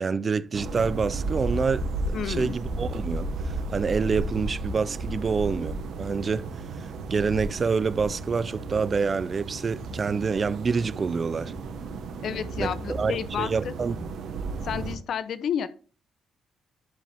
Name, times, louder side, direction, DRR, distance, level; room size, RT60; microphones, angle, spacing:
voice 1, 0.0-1.9 2.2-6.5 6.8-11.5 12.6-13.9, right 5 dB, 40° right, 0.4 m, -27 dB
sound 1, 0.5-15.0, right 2 dB, 75° right, 1.2 m, -33 dB
voice 2, 2.1-2.5 12.2-13.7 14.6-15.7, left 8 dB, 65° left, 0.7 m, -31 dB
11.0 x 5.1 x 3.4 m
cardioid pair, 90°, 0 cm